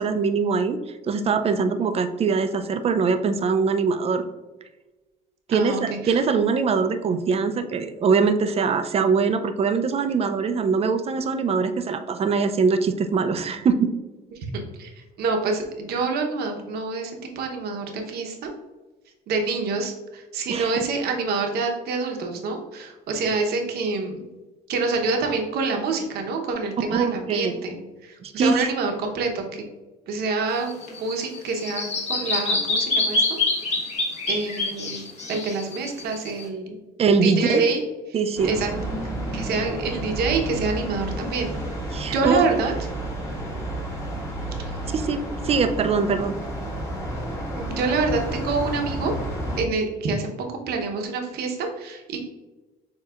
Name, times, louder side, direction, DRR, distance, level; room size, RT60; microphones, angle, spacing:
voice 1, 0.0-4.2 5.5-13.9 20.5-20.7 26.9-27.6 28.2-28.7 37.0-37.6 38.1-38.6 41.9-42.4 44.9-46.4, right 5 dB, 35° right, 9 dB, 0.5 m, -22 dB
voice 2, 5.5-6.2 14.3-18.5 19.3-24.3 24.7-29.6 30.1-33.4 34.3-36.8 37.2-37.8 38.4-38.7 39.0-41.5 42.1-42.7 44.6-44.7 47.6-49.1 49.6-50.3 50.7-52.2, right 4 dB, 70° right, 3 dB, 1.0 m, -27 dB
Bird vocalization bird call bird song, 30.5-36.4, left 2 dB, 40° left, 1.4 m, -26 dB
sound 1, 38.4-49.6, right 1 dB, 20° left, 1.5 m, -31 dB
7.2 x 2.9 x 2.4 m, 1.1 s
cardioid pair, 110°, 17 cm